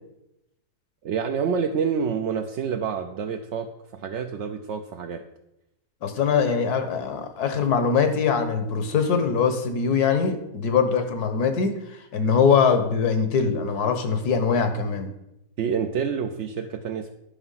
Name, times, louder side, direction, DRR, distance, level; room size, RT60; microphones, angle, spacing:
voice 1, 1.0-5.2 15.6-17.1, right 6 dB, 65° right, 5 dB, 0.7 m, -28 dB
voice 2, 6.0-11.8 12.1-15.1, left 6 dB, 75° left, 8 dB, 1.6 m, -22 dB
10.0 x 5.8 x 5.6 m, 0.87 s
omnidirectional pair, 1.7 m